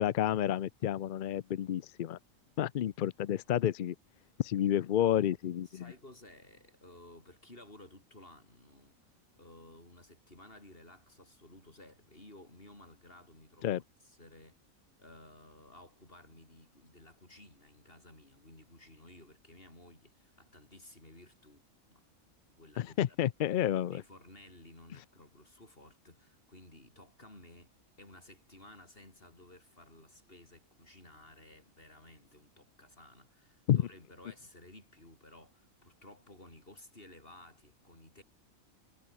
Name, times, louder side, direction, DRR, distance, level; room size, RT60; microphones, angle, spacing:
voice 1, 0.0-2.2 2.6-4.0 4.4-5.9 13.6-13.8 22.8-24.0 33.7-33.8, left 11 dB, 65° left, 0.5 m, -30 dB
voice 2, 5.6-9.0 9.4-14.6 15.0-21.6 21.9-22.1 22.5-23.2 23.9-27.7 28.0-38.2, left 1 dB, 40° left, 6.1 m, -55 dB
omnidirectional pair, 1.4 m